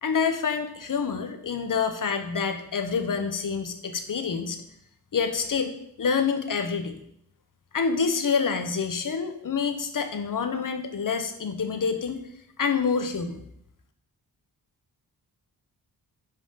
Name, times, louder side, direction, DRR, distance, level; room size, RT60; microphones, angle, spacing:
voice 1, 0.0-4.6 5.1-6.9 7.7-12.2 12.6-13.5, left 5 dB, 50° left, 7 dB, 1.0 m, -27 dB
5.4 x 5.1 x 5.7 m, 0.71 s
cardioid pair, 65°, 41 cm